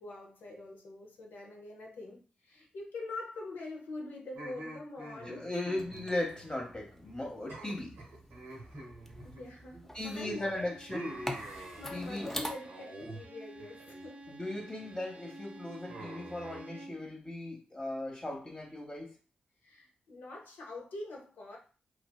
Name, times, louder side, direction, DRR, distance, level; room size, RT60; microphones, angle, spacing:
voice 1, 0.0-5.5 9.2-10.8 11.5-14.4 19.6-21.6, left 2 dB, 75° left, -1 dB, 0.6 m, -44 dB
sound 1, 4.3-6.8 7.0-7.2 7.5-9.8 10.2-12.2 12.6-13.2 13.6-14.1 14.5-14.9 15.9-16.6, right 1 dB, 80° right, 0.7 m, -46 dB
voice 2, 5.3-7.9 9.9-11.2 11.9-12.3 14.3-19.2, left 1 dB, 30° left, -1 dB, 0.9 m, -37 dB
sound 2, 5.8-12.5, equal, 10° left, 0.5 m, -45 dB
Bowed string instrument, 10.2-17.1, right 2 dB, 45° right, 0.4 m, -52 dB
2.5 x 2.3 x 2.2 m, 0.37 s
supercardioid pair, 40°, 3 cm